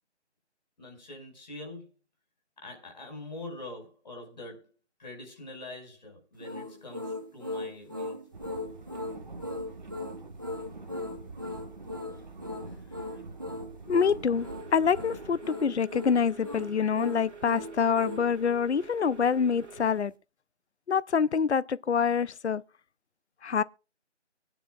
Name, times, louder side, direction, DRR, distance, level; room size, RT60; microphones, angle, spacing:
voice 1, 0.8-1.9 2.6-4.7 5.0-8.2, left 2 dB, 40° left, 5.3 m, -44 dB
sound 1, 6.4-18.3, left 2 dB, 20° right, 0.7 m, -38 dB
sound 2, 8.3-15.4, right 3 dB, 40° right, 1.3 m, -45 dB
voice 2, 13.9-20.1 20.9-22.6 23.4-23.6, left 6 dB, 70° left, 0.6 m, -26 dB
sound 3, 14.3-20.0, right 6 dB, 75° right, 2.0 m, -47 dB
24.0 x 9.2 x 2.4 m
figure-of-eight pair, 155°, 35 cm